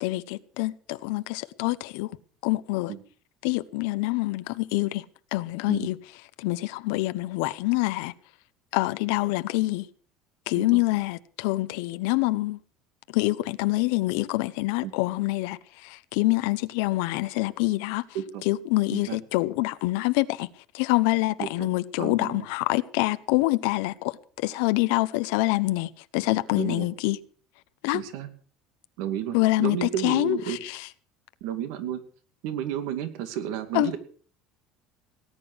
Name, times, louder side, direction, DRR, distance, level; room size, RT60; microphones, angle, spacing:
voice 1, 0.0-2.1 2.4-2.9 3.4-5.0 5.3-6.0 6.4-8.1 8.7-9.9 10.5-12.6 13.1-18.0 18.4-20.5 20.7-27.2 27.8-28.0 29.3-30.9 33.7-33.9, left 20 dB, 85° left, 0.8 m, -26 dB
voice 2, 22.0-22.5 26.5-26.9 27.9-28.3 29.0-30.6 31.4-32.0 32.4-34.0, right 10 dB, 80° right, 2.3 m, -32 dB
18.5 x 10.0 x 6.3 m
cardioid pair, 145°, 0 cm